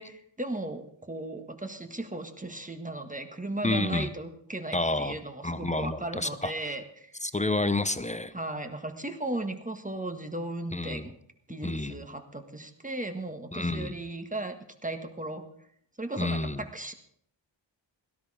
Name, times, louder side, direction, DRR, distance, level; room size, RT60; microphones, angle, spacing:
voice 1, 0.0-7.1 8.3-11.1 11.5-14.6 14.8-15.5 16.0-16.9, right 2 dB, 15° right, 6 dB, 1.6 m, -36 dB
voice 2, 3.6-4.1 4.7-6.8 7.2-8.3 10.7-11.1 11.6-12.0 13.5-14.0 16.2-16.6, left 2 dB, 15° left, 12 dB, 0.7 m, -30 dB
17.0 x 13.0 x 4.9 m, 0.67 s
wide cardioid pair, 80°, 46 cm